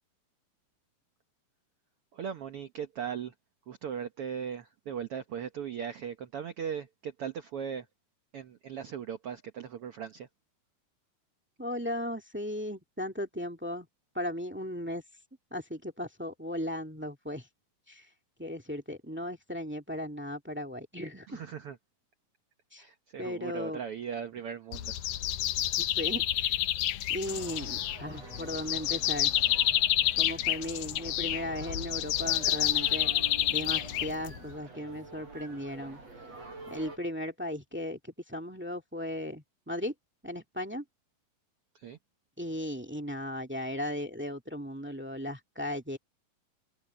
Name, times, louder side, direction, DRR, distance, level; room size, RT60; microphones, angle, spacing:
voice 1, 2.1-3.3 3.7-7.9 8.3-10.3 21.3-21.8 22.8-24.9 41.7-42.0, right 8 dB, 80° right, 1.2 m, -38 dB
voice 2, 11.6-13.9 14.1-15.0 15.5-17.5 17.9-18.1 18.4-21.4 22.7-22.8 23.2-23.8 25.8-26.6 27.1-29.3 30.2-33.1 33.5-36.0 36.7-38.0 38.3-39.9 40.2-40.8 42.4-46.0, left 1 dB, 5° right, 0.8 m, -36 dB
sound 1, 24.7-34.5, left 13 dB, 70° left, 2.1 m, -29 dB
sound 2, 27.2-37.0, right 3 dB, 45° right, 8.9 m, -47 dB
omnidirectional pair, 4.2 m